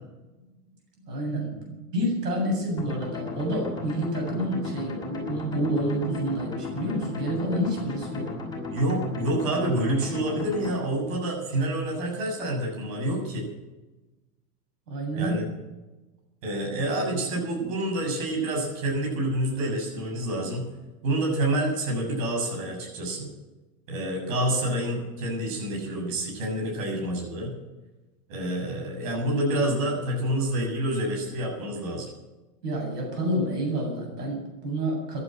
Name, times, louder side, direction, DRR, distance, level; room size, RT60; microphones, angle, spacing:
voice 1, 1.0-8.3 14.9-15.4 32.6-35.2, right 1 dB, 90° right, 0 dB, 7.8 m, -29 dB
sound 1, 2.8-10.8, left 3 dB, 10° left, 5.6 m, -35 dB
voice 2, 8.7-13.5 15.2-15.5 16.4-20.6 21.0-23.3 23.9-27.5 28.3-32.1, right 1 dB, 55° right, -1 dB, 7.6 m, -28 dB
15.0 x 11.0 x 7.8 m, 1.1 s
hypercardioid pair, 130°, 46 cm